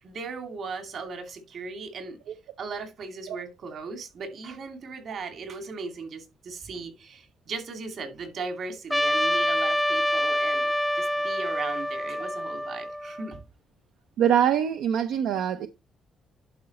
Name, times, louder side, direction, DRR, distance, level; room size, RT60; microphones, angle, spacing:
voice 1, 0.0-2.2 2.6-13.4, right 4 dB, 60° right, 2.5 m, -37 dB
Trumpet, 8.9-13.4, equal, 5° left, 0.4 m, -26 dB
voice 2, 14.2-15.7, right 9 dB, 85° right, 0.6 m, -23 dB
11.0 x 3.8 x 4.2 m
cardioid pair, 90°, 0 cm